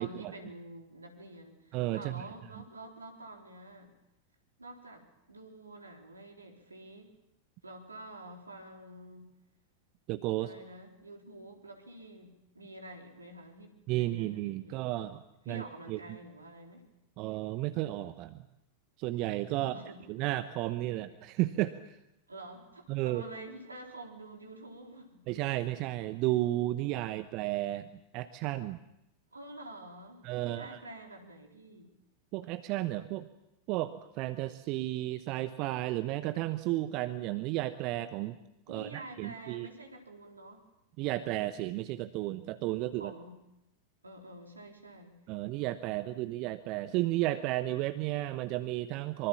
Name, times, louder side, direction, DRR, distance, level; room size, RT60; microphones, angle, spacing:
voice 1, 0.0-3.9 4.6-7.2 7.6-9.3 10.4-15.0 15.5-16.8 19.6-20.1 22.3-25.3 29.3-31.9 38.7-40.7 42.9-43.4 44.0-45.2, right 1 dB, 80° right, 3 dB, 4.0 m, -48 dB
voice 2, 1.7-2.1 10.1-10.5 13.9-15.6 15.9-16.0 17.2-18.4 19.0-19.7 20.1-21.7 22.9-23.2 25.3-27.9 28.1-28.8 30.2-30.8 32.3-33.3 33.7-38.3 38.7-39.7 41.0-43.1 45.3-49.3, right 16 dB, 40° right, 12 dB, 1.0 m, -33 dB
25.0 x 24.5 x 7.3 m, 0.86 s
figure-of-eight pair, 90°, 0 cm